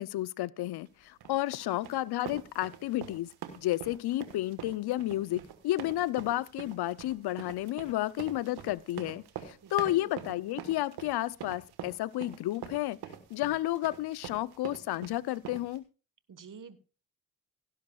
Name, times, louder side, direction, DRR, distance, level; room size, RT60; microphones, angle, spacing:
voice 1, 0.0-3.3 3.6-13.0 13.3-15.8, left 15 dB, 80° left, 0.5 m, -32 dB
sound 1, 1.2-15.8, right 9 dB, 90° right, 1.4 m, -45 dB
voice 2, 1.5-1.8 9.6-10.1 16.3-16.8, right 6 dB, 55° right, 1.4 m, -49 dB
17.0 x 11.0 x 2.3 m
supercardioid pair, 45°, 38 cm